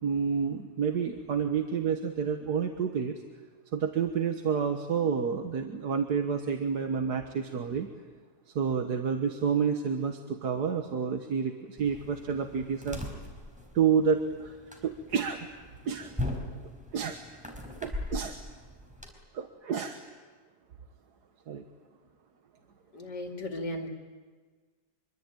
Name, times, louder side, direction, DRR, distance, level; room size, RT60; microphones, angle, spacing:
voice 1, 0.0-3.2 3.7-7.9 8.5-13.0 13.7-14.6 14.8-15.5 15.9-16.1 16.9-17.2 17.8-18.4 19.3-20.0 21.5-21.6, right 6 dB, 70° right, 5 dB, 1.8 m, -29 dB
sound 1, 11.8-19.1, left 1 dB, 5° right, 4.5 m, -40 dB
voice 2, 22.9-23.9, left 1 dB, 75° left, 3 dB, 2.9 m, -36 dB
25.0 x 23.5 x 9.1 m, 1.4 s
omnidirectional pair, 1.8 m